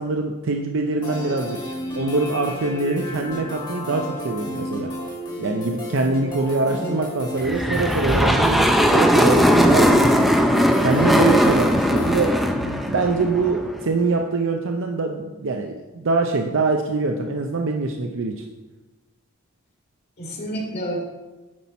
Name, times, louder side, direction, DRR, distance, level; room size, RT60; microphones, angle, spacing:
voice 1, 0.0-1.6 1.9-4.9 5.4-10.5 10.8-18.4, right 3 dB, 60° right, 3 dB, 0.6 m, -24 dB
sound 1, 1.0-12.3, equal, 20° left, 1.6 m, -32 dB
voice 2, 6.6-7.0 20.2-21.0, equal, 50° left, -2 dB, 2.2 m, -30 dB
sound 2, 7.4-13.9, equal, ahead, 0.5 m, -18 dB
9.5 x 5.8 x 4.3 m, 1.2 s
head